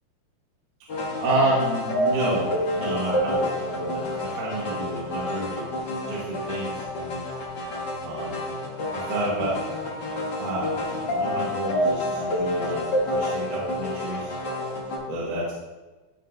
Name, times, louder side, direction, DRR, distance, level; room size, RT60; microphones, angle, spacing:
sound 1, 0.9-15.0, left 1 dB, 60° left, 1.1 m, -28 dB
voice 1, 1.2-5.6 6.1-6.8 8.0-8.5 8.9-9.6 10.4-14.3 15.1-15.5, right 2 dB, 60° right, -7 dB, 2.8 m, -29 dB
15.0 x 5.1 x 2.7 m, 1.2 s
omnidirectional pair, 4.6 m